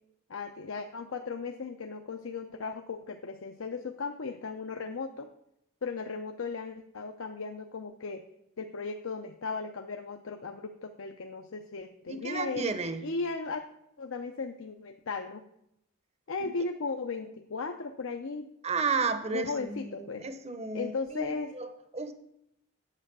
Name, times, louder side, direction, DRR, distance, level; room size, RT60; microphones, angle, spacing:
voice 1, 0.3-5.3 5.8-8.2 8.6-12.8 13.0-13.6 14.0-15.4 16.3-18.5 19.3-20.3 20.7-21.5, left 4 dB, 70° left, 4 dB, 0.6 m, -36 dB
voice 2, 12.1-13.0 18.6-21.3 21.5-22.1, right 4 dB, 30° right, 10 dB, 0.8 m, -32 dB
8.9 x 7.7 x 6.1 m, 0.79 s
head